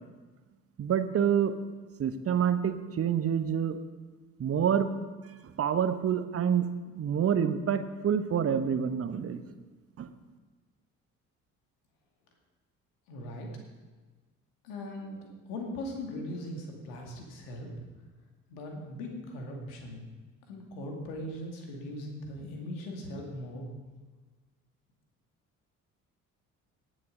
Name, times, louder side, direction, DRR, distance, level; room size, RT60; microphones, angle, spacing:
voice 1, 0.8-1.5 2.0-3.8 4.4-4.9 5.6-6.7 6.9-9.4 10.0-10.1, right 8 dB, 35° right, 10 dB, 1.0 m, -27 dB
voice 2, 13.1-13.5 14.6-17.9 18.5-20.0 20.5-23.7, left 1 dB, 65° left, 1 dB, 2.3 m, -39 dB
18.5 x 6.3 x 5.3 m, 1.3 s
figure-of-eight pair, 45°, 43 cm